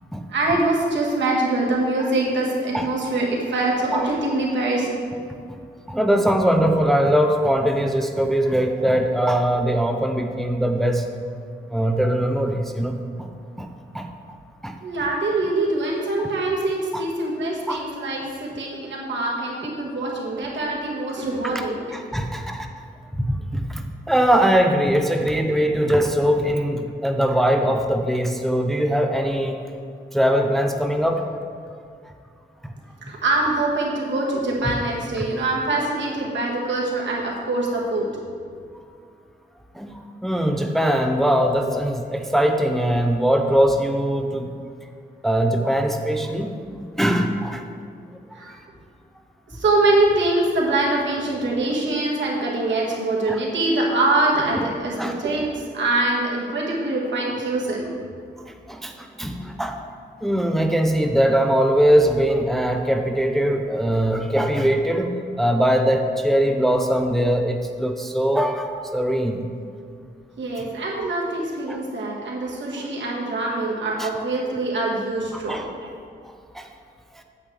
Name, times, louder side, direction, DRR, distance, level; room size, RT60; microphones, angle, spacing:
voice 1, 0.3-5.0 14.8-21.9 33.1-38.1 48.3-48.5 49.5-58.0 70.4-75.9, right 2 dB, 80° right, -3 dB, 1.7 m, -24 dB
voice 2, 5.9-11.0 11.7-13.3 13.6-13.7 13.9-14.1 14.6-14.8 16.2-16.3 16.9-17.0 17.7-17.9 21.4-21.6 21.9-22.7 23.2-29.6 30.1-31.3 32.6-32.7 38.7-38.8 39.7-39.9 40.2-44.5 45.2-47.7 48.3-48.6 53.3-53.4 54.6-54.7 55.0-55.2 58.5-59.8 60.2-69.5 70.6-70.7 71.7-71.8 72.8-72.9 74.0-74.1 75.3-75.7 76.5-76.7 77.1-77.2, equal, ahead, 4 dB, 0.5 m, -21 dB
8.7 x 7.9 x 3.4 m, 2.2 s
wide cardioid pair, 115°, 19 cm